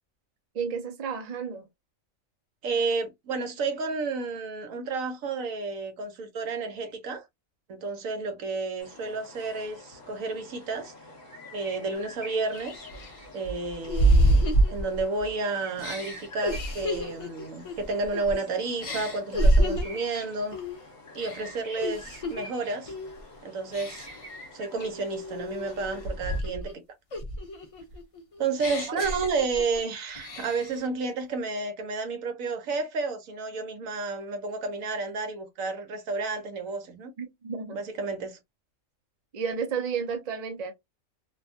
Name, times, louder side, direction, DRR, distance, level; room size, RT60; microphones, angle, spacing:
voice 1, 0.5-1.7 37.2-37.8 39.3-40.7, right 6 dB, 45° right, 0.6 m, -32 dB
voice 2, 2.6-7.2 7.7-10.9 11.5-12.8 13.3-20.6 21.1-22.9 23.4-24.1 24.5-26.8 28.4-37.1 37.7-38.4, right 3 dB, 75° right, 1.1 m, -31 dB
sound 1, 8.8-26.4, left 1 dB, 35° left, 1.1 m, -47 dB
sound 2, 11.9-12.0 12.6-15.3 15.8-18.4 18.8-20.0 20.5-20.8 21.1-22.4 22.9-23.2 23.7-24.3 24.8-26.7 27.1-29.8 30.1-30.8, right 1 dB, 65° left, 0.3 m, -27 dB
2.6 x 2.2 x 2.5 m
omnidirectional pair, 1.4 m